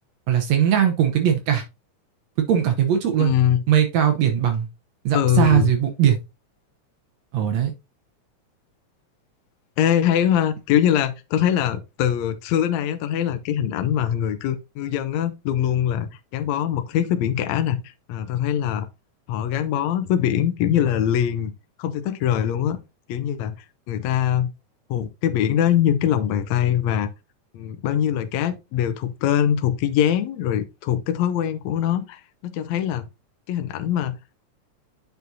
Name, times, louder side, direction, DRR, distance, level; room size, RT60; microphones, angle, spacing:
voice 1, 0.3-1.6 2.4-3.4 3.7-4.7 5.1-6.2 7.3-7.7, right 9 dB, 70° right, 2.0 m, -20 dB
voice 2, 3.2-3.6 5.1-5.7 9.8-18.9 19.3-21.5 21.8-22.8 23.1-23.6 23.9-24.5 24.9-27.1 27.5-33.1 33.5-34.2, left 10 dB, 75° left, 1.9 m, -22 dB
9.2 x 5.2 x 2.7 m
omnidirectional pair, 3.4 m